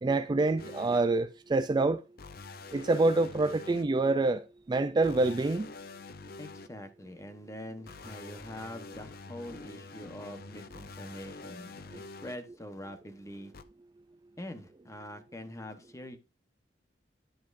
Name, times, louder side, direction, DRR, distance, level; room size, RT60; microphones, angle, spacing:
voice 1, 0.0-2.0 2.7-5.7, right 2 dB, 25° right, 0.3 m, -26 dB
sound 1, 0.6-1.0 2.2-3.8 5.0-6.7 7.9-12.4 13.5-13.6, left 3 dB, 55° left, 0.6 m, -46 dB
voice 2, 6.4-13.5 14.4-16.2, left 1 dB, 15° left, 1.1 m, -44 dB
10.5 x 7.5 x 2.6 m
head